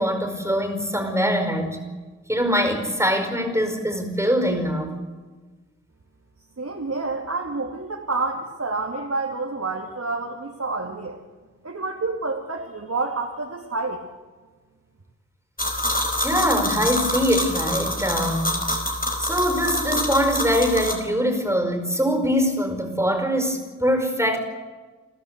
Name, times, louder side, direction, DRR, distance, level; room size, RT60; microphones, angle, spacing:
voice 1, 0.0-1.8 2.3-4.9 16.2-18.6 19.2-24.4, equal, 10° right, 5 dB, 5.1 m, -23 dB
voice 2, 6.6-11.2 11.6-14.0, right 3 dB, 60° right, -1 dB, 2.8 m, -28 dB
sound 1, 15.6-20.9, left 1 dB, 30° left, 4.7 m, -26 dB
29.0 x 15.5 x 8.2 m, 1.3 s
wide cardioid pair, 70°, 30 cm